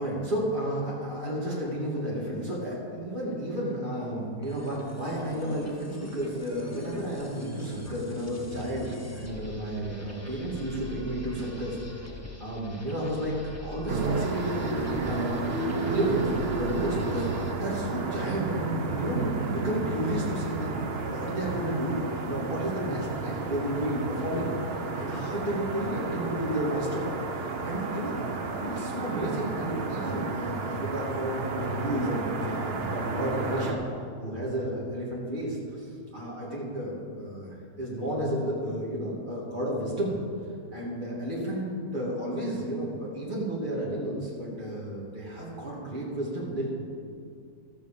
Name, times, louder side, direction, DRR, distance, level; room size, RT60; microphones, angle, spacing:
voice 1, 0.0-12.0 12.4-15.4 15.8-20.8 21.1-33.8 34.2-40.1 40.7-41.7 41.9-46.9, right 1 dB, 30° right, -6 dB, 3.0 m, -32 dB
sound 1, 4.4-17.6, left 1 dB, 15° left, 0.7 m, -43 dB
sound 2, 13.9-33.7, right 3 dB, 45° right, 0.9 m, -32 dB
14.5 x 6.5 x 7.0 m, 2.5 s
omnidirectional pair, 1.7 m